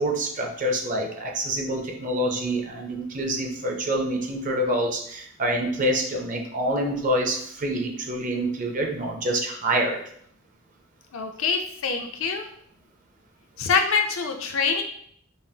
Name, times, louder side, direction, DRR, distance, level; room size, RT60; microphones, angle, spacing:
voice 1, 0.0-10.0, right 1 dB, 40° right, 1 dB, 0.6 m, -26 dB
voice 2, 11.1-12.5 13.6-14.8, left 5 dB, 70° left, 4 dB, 0.5 m, -25 dB
5.4 x 2.0 x 2.7 m, 0.66 s
head